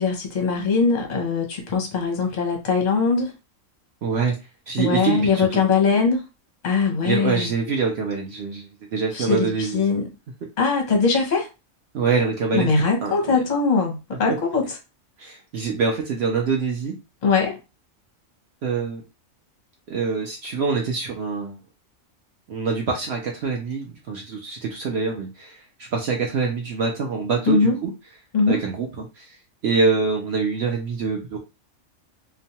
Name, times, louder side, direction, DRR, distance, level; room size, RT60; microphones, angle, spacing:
voice 1, 0.0-3.3 4.8-6.3 6.6-7.5 9.1-10.1 10.6-11.5 12.5-14.7 17.2-17.6 27.5-27.7 28.3-28.6, left 4 dB, 45° left, 0.7 m, -21 dB
voice 2, 4.0-4.4 4.7-5.5 7.0-9.8 11.9-12.7 13.0-13.1 15.2-17.0 18.6-19.0 19.9-21.6 22.5-27.9 28.5-29.3 29.6-31.4, right 5 dB, 60° right, 0.8 m, -25 dB
3.0 x 2.2 x 2.7 m
omnidirectional pair, 1.4 m